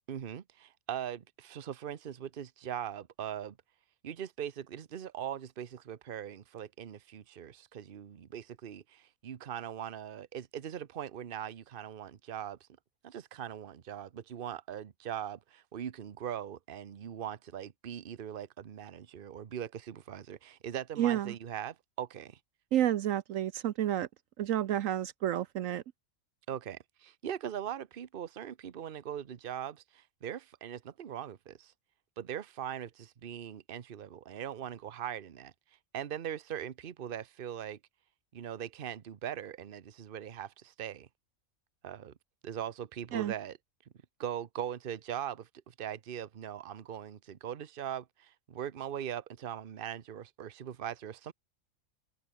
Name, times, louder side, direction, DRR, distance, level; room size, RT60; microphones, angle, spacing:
voice 1, 0.1-3.6 4.0-12.6 13.0-22.4 26.5-31.7 32.2-35.5 35.9-37.8 38.3-41.1 41.8-42.1 42.4-43.6 44.2-51.3, right 10 dB, 45° right, 1.0 m, -40 dB
voice 2, 21.0-21.3 22.7-24.1 24.4-25.8 43.1-43.3, right 11 dB, 75° right, 1.0 m, -30 dB
omnidirectional pair, 1.4 m